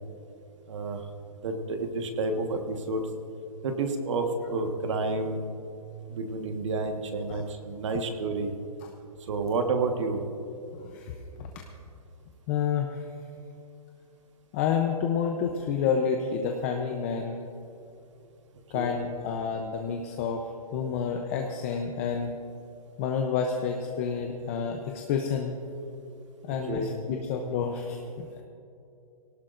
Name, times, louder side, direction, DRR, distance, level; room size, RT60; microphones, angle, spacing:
voice 1, 0.7-1.0 1.4-3.0 3.6-5.4 6.1-8.5 9.3-10.2 18.7-19.0 26.5-26.9, right 3 dB, 50° right, 5 dB, 1.5 m, -30 dB
voice 2, 10.7-11.6 12.5-13.0 14.5-17.4 18.7-22.3 23.0-25.6 26.4-28.4, left 6 dB, 20° left, 3 dB, 0.7 m, -29 dB
19.5 x 17.5 x 2.6 m, 2.8 s
hypercardioid pair, 165°, 20 cm